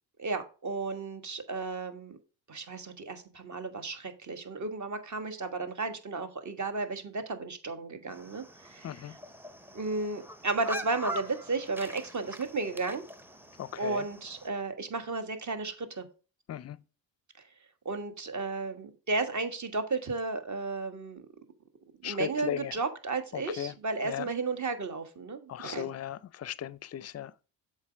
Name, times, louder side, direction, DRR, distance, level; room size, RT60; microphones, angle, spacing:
voice 1, 0.2-2.2 2.5-9.0 9.7-13.0 13.8-16.0 17.8-21.2 22.0-25.9, right 3 dB, 40° right, 1.4 m, -34 dB
sound 1, 8.1-14.5, equal, 5° right, 0.6 m, -43 dB
voice 2, 8.8-9.1 13.6-14.0 16.5-16.8 22.0-22.7 23.3-23.7 24.0-24.3 25.5-27.3, left 10 dB, 35° left, 0.5 m, -37 dB
7.2 x 4.4 x 5.0 m
supercardioid pair, 65°, 47 cm